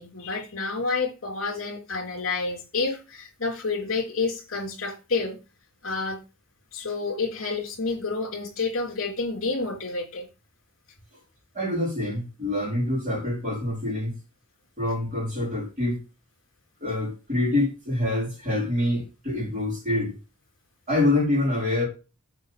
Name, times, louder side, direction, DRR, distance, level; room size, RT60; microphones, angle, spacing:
voice 1, 0.0-5.4 5.8-6.2 6.7-10.3, left 4 dB, 65° left, 3.5 m, -29 dB
voice 2, 11.5-14.2 14.8-16.0 16.8-20.2 20.9-21.8, left 1 dB, 35° right, 4.1 m, -26 dB
8.1 x 5.4 x 5.2 m
head